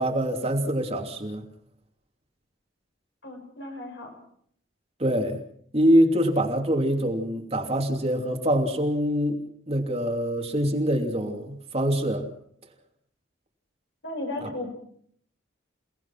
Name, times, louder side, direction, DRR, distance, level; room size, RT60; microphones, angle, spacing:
voice 1, 0.0-1.4 5.0-5.4 5.7-9.4 9.7-12.3 14.4-14.5, equal, 30° right, 3 dB, 2.9 m, -24 dB
voice 2, 3.2-4.2 14.0-14.7, left 2 dB, 65° left, 2 dB, 6.1 m, -35 dB
29.0 x 18.5 x 6.0 m, 0.63 s
head